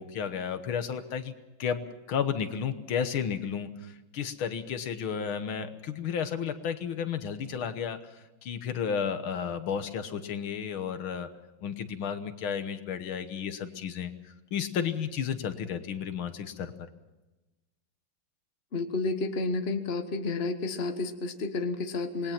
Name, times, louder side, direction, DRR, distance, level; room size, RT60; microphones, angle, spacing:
voice 1, 0.0-1.3 1.6-11.3 11.6-14.1 14.5-16.7, left 7 dB, 80° left, 10 dB, 2.0 m, -32 dB
voice 2, 18.7-22.3, left 3 dB, 35° left, 7 dB, 1.4 m, -31 dB
27.0 x 20.5 x 5.9 m, 1.1 s
omnidirectional pair, 2.2 m